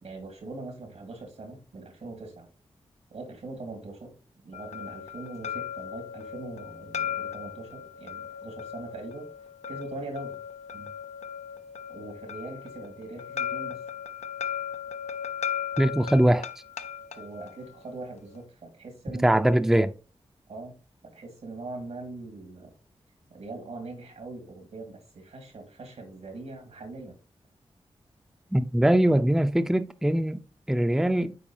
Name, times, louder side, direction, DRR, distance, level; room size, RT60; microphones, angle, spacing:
voice 1, 0.0-2.5 3.1-4.1 4.4-9.3 9.7-10.4 10.7-10.9 11.9-13.8 16.0-16.1 17.2-19.5 20.5-20.8 21.1-22.7 23.3-27.2, right 2 dB, 80° right, 2.1 m, -41 dB
sound 1, 4.5-18.4, left 9 dB, 85° left, 0.6 m, -37 dB
voice 2, 15.8-16.5 19.2-19.9 28.5-31.4, right 1 dB, 5° right, 0.5 m, -22 dB
9.2 x 4.3 x 2.9 m
cardioid pair, 50°, 11 cm